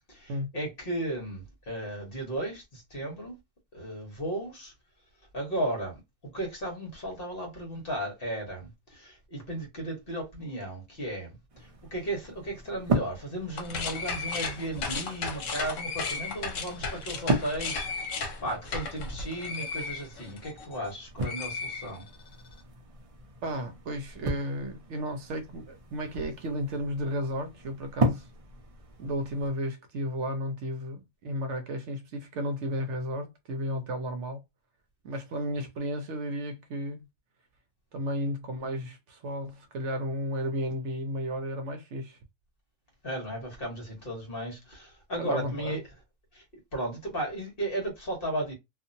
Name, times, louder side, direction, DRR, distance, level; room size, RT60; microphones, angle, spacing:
voice 1, 0.1-3.4 3.7-4.7 5.3-22.1 43.0-45.8 46.3-46.4 46.7-48.5, right 1 dB, 45° left, 1.3 m, -35 dB
sound 1, 11.5-29.5, right 2 dB, 50° right, 0.4 m, -36 dB
sound 2, 13.5-20.9 21.2-22.4, left 4 dB, 75° left, 1.1 m, -35 dB
voice 2, 23.4-28.3 29.0-34.4 35.0-37.1 37.9-42.2 45.2-45.8, equal, 70° right, 0.9 m, -33 dB
2.7 x 2.5 x 2.6 m
omnidirectional pair, 1.3 m